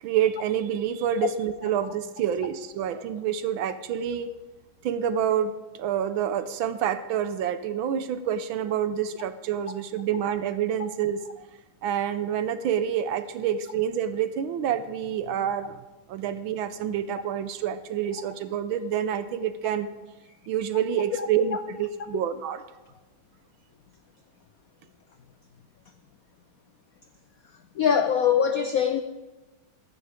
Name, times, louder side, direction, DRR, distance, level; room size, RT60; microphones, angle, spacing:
voice 1, 0.0-4.3 4.8-11.5 11.8-15.8 16.1-19.9 20.5-22.6, right 9 dB, 75° right, 11 dB, 1.4 m, -28 dB
voice 2, 27.8-29.0, left 8 dB, 85° left, 7 dB, 0.7 m, -22 dB
16.0 x 12.5 x 3.6 m, 1.1 s
omnidirectional pair, 2.4 m